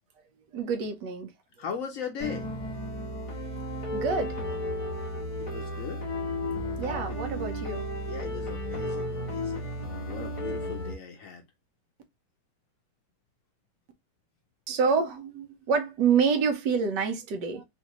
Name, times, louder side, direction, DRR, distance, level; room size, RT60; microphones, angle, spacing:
voice 1, 0.5-1.3 3.9-4.4 6.8-7.9 14.7-17.6, right 5 dB, 85° right, 1.5 m, -27 dB
voice 2, 1.6-2.5 5.4-6.0 8.0-9.7 10.1-11.4, left 7 dB, 65° left, 0.9 m, -38 dB
sound 1, 2.2-11.0, equal, 25° left, 0.7 m, -33 dB
3.8 x 2.6 x 2.9 m
omnidirectional pair, 1.8 m